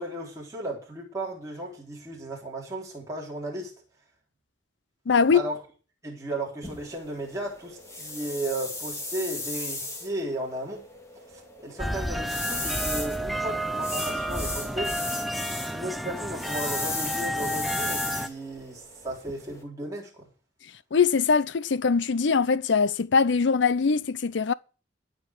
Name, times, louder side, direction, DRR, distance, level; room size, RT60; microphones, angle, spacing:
voice 1, 0.0-3.7 5.3-5.6 6.0-10.9 11.1-15.0 15.7-20.3, right 1 dB, 20° right, 3.9 m, -35 dB
voice 2, 5.1-5.4 20.9-24.5, left 5 dB, 80° left, 0.6 m, -22 dB
sound 1, 6.6-19.6, left 2 dB, 15° left, 2.2 m, -36 dB
sound 2, 11.8-18.3, equal, ahead, 0.6 m, -31 dB
15.0 x 5.4 x 7.8 m
head